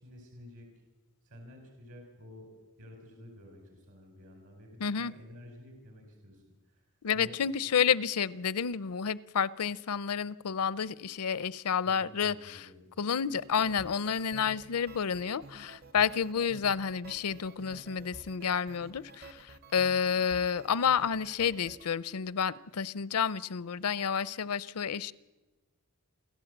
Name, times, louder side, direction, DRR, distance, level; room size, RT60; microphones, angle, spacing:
voice 1, 0.0-0.7 1.2-2.5 2.7-6.8 7.1-7.5 11.8-12.9, left 1 dB, 70° right, 2 dB, 4.8 m, -51 dB
voice 2, 4.8-5.1 7.0-12.6 13.0-25.1, left 7 dB, 80° left, 19 dB, 0.6 m, -30 dB
sound 1, 13.3-21.9, right 2 dB, 45° right, 0.9 m, -51 dB
28.5 x 12.0 x 8.0 m, 1.1 s
head